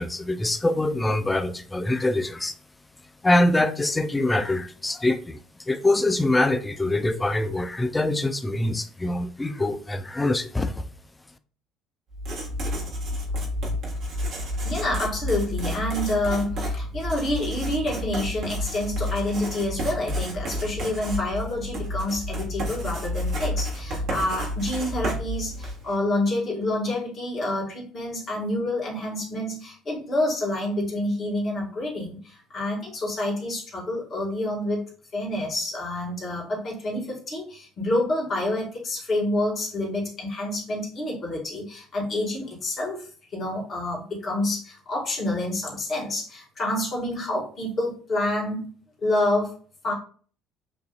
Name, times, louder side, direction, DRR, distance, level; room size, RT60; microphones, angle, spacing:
voice 1, 0.0-2.5 3.2-10.8, left 2 dB, 15° left, 0.5 m, -24 dB
Writing, 12.1-25.9, left 1 dB, 55° right, 1.5 m, -30 dB
voice 2, 14.6-34.9 35.1-48.7 49.0-49.6 49.8-49.9, left 1 dB, 40° left, 1.9 m, -28 dB
6.9 x 2.7 x 2.4 m
hypercardioid pair, 60°, 0 cm